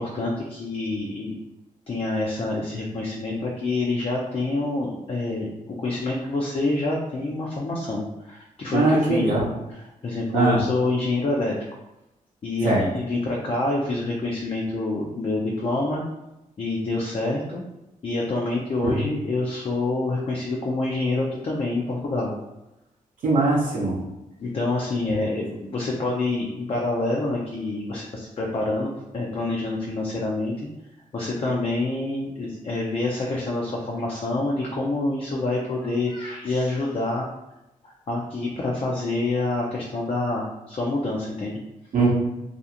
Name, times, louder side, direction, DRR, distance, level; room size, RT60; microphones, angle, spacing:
voice 1, 0.0-1.4 1.9-11.6 12.4-16.0 16.6-17.6 18.0-22.3 24.4-30.5 31.1-37.3 37.8-41.6, left 2 dB, 45° left, -2 dB, 0.4 m, -27 dB
voice 2, 8.7-9.5 10.3-10.6 12.6-12.8 18.8-19.0 23.2-24.0 41.9-42.1, right 2 dB, 75° right, -5 dB, 0.6 m, -21 dB
2.4 x 2.4 x 2.8 m, 0.94 s
cardioid pair, 90°, 14 cm